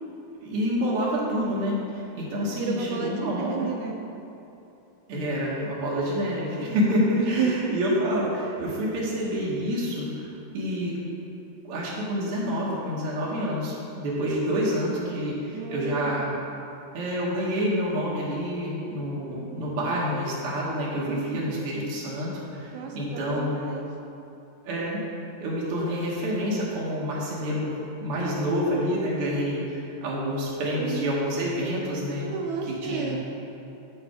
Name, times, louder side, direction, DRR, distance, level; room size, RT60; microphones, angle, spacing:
voice 1, 0.4-3.7 5.1-10.3 10.5-11.0 11.6-16.3 16.9-23.6 24.6-25.0 25.4-32.3 32.7-33.2, equal, 60° right, -6 dB, 1.7 m, -28 dB
voice 2, 2.4-4.0 7.1-7.8 15.5-16.2 21.1-21.6 22.7-23.9 30.8-31.2 32.2-33.3, right 5 dB, 85° right, 1 dB, 2.2 m, -32 dB
7.8 x 4.8 x 4.8 m, 2.8 s
omnidirectional pair, 3.5 m